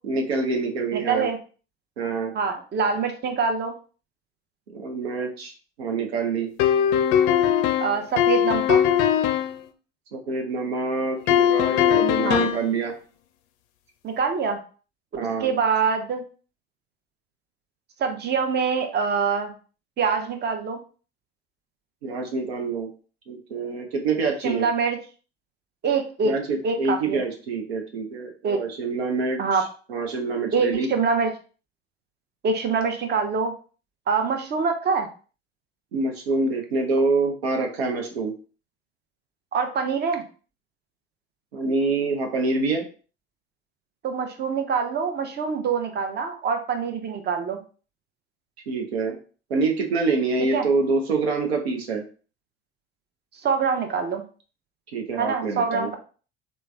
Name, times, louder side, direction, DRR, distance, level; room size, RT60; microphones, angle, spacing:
voice 1, 0.0-1.3 2.0-2.3 4.7-5.5 5.8-6.5 10.1-12.9 15.2-15.5 22.0-22.9 23.3-24.7 26.2-30.9 35.9-38.3 41.5-42.8 48.7-49.2 49.5-52.0 54.9-55.9, right 3 dB, 85° right, 3 dB, 0.6 m, -26 dB
voice 2, 0.9-1.4 2.3-3.7 7.8-8.8 12.2-12.5 14.0-14.6 15.4-16.2 18.0-19.5 20.0-20.8 24.4-25.0 25.8-26.3 26.6-27.2 28.4-28.6 29.4-29.6 30.5-31.3 32.4-33.5 34.1-35.1 39.5-40.2 44.0-47.6 50.5-50.6 53.4-54.2 55.2-56.0, right 5 dB, 35° right, 5 dB, 0.7 m, -24 dB
sound 1, 6.6-9.6 11.3-12.7, left 10 dB, 60° left, 0.4 m, -20 dB
3.3 x 2.1 x 3.1 m, 0.38 s
hypercardioid pair, 60°, 31 cm